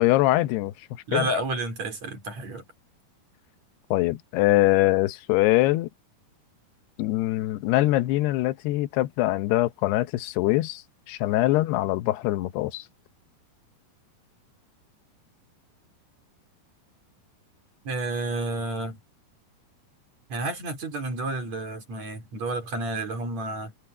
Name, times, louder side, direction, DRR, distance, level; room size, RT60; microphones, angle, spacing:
voice 1, 0.0-1.3 3.9-5.9 7.0-10.8 11.1-12.8, left 17 dB, 90° left, 2.9 m, -23 dB
voice 2, 1.1-2.6 17.9-19.0 20.3-23.7, right 2 dB, 45° right, 5.2 m, -30 dB
omnidirectional pair, 4.6 m